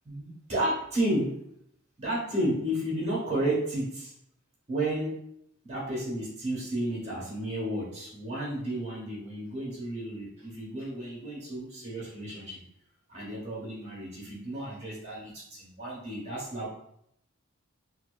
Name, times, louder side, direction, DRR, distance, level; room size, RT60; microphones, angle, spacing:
voice 1, 0.0-1.4 2.0-4.1 4.7-5.2 5.6-12.6 13.1-16.7, right 1 dB, 30° right, -7 dB, 1.2 m, -32 dB
4.1 x 2.3 x 2.3 m, 0.76 s
head